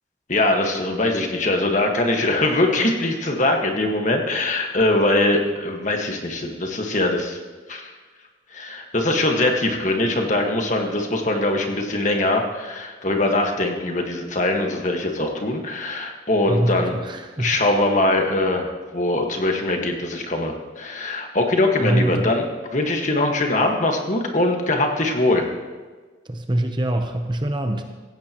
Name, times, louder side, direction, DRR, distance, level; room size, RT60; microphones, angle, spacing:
voice 1, 0.3-7.4 7.7-7.9 8.5-16.9 17.4-22.4 22.7-25.5, left 2 dB, 40° left, 2 dB, 1.6 m, -22 dB
voice 2, 16.5-17.6 21.8-22.3 26.2-27.8, right 1 dB, 25° right, 5 dB, 0.8 m, -24 dB
16.5 x 16.0 x 3.0 m, 1.4 s
head